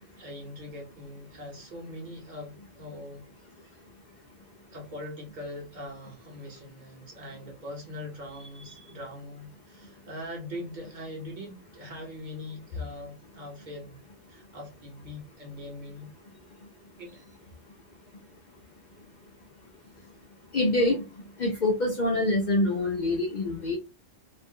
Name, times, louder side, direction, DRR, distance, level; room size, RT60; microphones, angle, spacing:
voice 1, 0.2-3.2 4.7-14.0 14.3-16.1 17.0-17.2, left 1 dB, 45° right, 1.0 m, -41 dB
voice 2, 20.5-21.0 21.4-23.8, left 2 dB, 50° left, 0.6 m, -25 dB
2.5 x 2.0 x 3.5 m
omnidirectional pair, 1.2 m